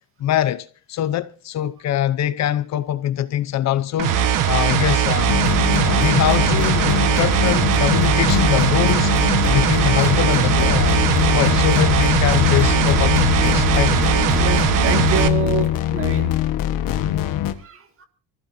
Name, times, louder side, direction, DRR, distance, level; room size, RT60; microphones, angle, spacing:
voice 1, 0.2-4.2 4.5-5.4 5.8-9.1 9.4-11.0 11.3-14.1, left 12 dB, 50° left, 0.8 m, -23 dB
sound 1, 4.0-15.3, right 9 dB, 65° right, 1.4 m, -19 dB
sound 2, 5.3-17.5, left 11 dB, 65° left, 1.4 m, -22 dB
voice 2, 14.4-16.4 17.6-18.1, right 6 dB, 40° right, 2.2 m, -26 dB
27.0 x 15.0 x 2.7 m
cardioid pair, 175°, 35 cm